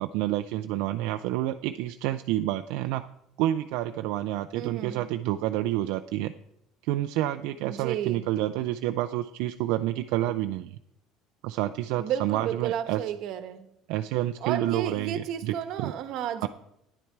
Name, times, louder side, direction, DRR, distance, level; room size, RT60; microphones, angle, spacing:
voice 1, 0.0-3.1 3.4-6.3 6.8-10.8 11.4-13.0 13.9-15.9 16.4-16.5, right 14 dB, 75° right, 8 dB, 0.4 m, -29 dB
voice 2, 4.5-5.1 7.6-8.3 12.0-13.7 14.4-16.5, right 10 dB, 55° right, 10 dB, 1.1 m, -32 dB
10.5 x 10.0 x 4.6 m, 0.76 s
cardioid pair, 160°, 0 cm